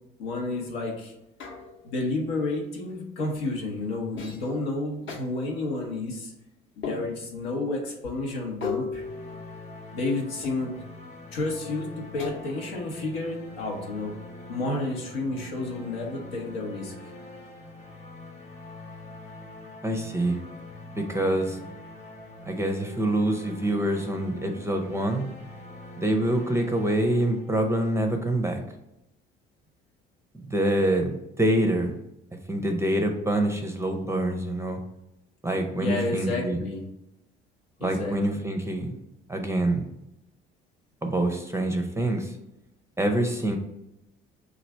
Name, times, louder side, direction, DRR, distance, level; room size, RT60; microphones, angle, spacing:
voice 1, 0.2-1.1 1.8-6.3 6.8-9.0 9.9-10.7 11.3-14.1 14.5-16.9 35.8-36.8 37.8-38.4, left 2 dB, 80° left, 0 dB, 0.8 m, -31 dB
sound 1, 1.4-2.0 3.2-3.5 4.2-4.5 5.1-5.2 6.8-7.5 8.6-9.9 10.4-11.0 12.2-12.8, left 5 dB, 45° left, 0.8 m, -37 dB
sound 2, 9.0-27.9, left 2 dB, 25° left, 1.0 m, -44 dB
voice 2, 19.8-20.4 20.9-21.6 22.5-25.3 26.0-28.6 30.4-31.9 32.5-34.8 35.4-36.6 37.8-38.9 39.3-39.9 41.0-42.3 43.0-43.6, right 1 dB, 10° right, 4 dB, 0.5 m, -26 dB
3.1 x 2.4 x 4.3 m, 0.86 s
hypercardioid pair, 55°, 29 cm